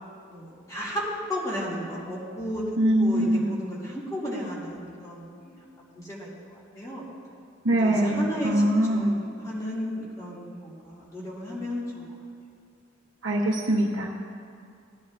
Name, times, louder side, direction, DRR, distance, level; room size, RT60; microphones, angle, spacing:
voice 1, 0.3-2.6 3.0-7.1 7.7-11.9, equal, 15° left, -7 dB, 2.4 m, -34 dB
voice 2, 2.8-3.6 7.6-9.2 13.2-14.2, right 1 dB, 80° right, -2 dB, 0.9 m, -23 dB
18.0 x 10.5 x 2.6 m, 2.4 s
head